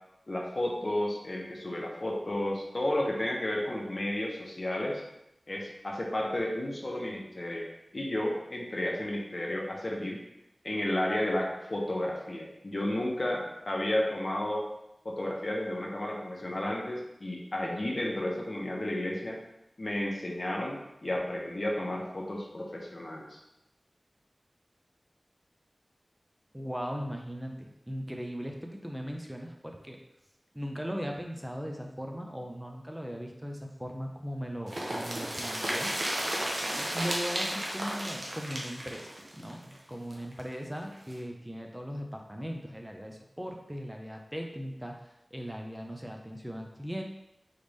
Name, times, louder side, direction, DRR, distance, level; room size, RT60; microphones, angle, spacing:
voice 1, 0.3-5.0 5.5-7.7 7.9-10.2 10.6-14.7 15.0-19.4 19.8-23.4, left 1 dB, 55° left, -1 dB, 0.9 m, -32 dB
voice 2, 26.5-30.0 30.5-47.0, equal, 10° right, 2 dB, 0.5 m, -39 dB
sound 1, 34.7-40.4 40.7-40.8 41.1-41.2, right 1 dB, 75° right, 0.8 m, -33 dB
3.9 x 3.4 x 3.4 m, 0.88 s
wide cardioid pair, 65°, 0 cm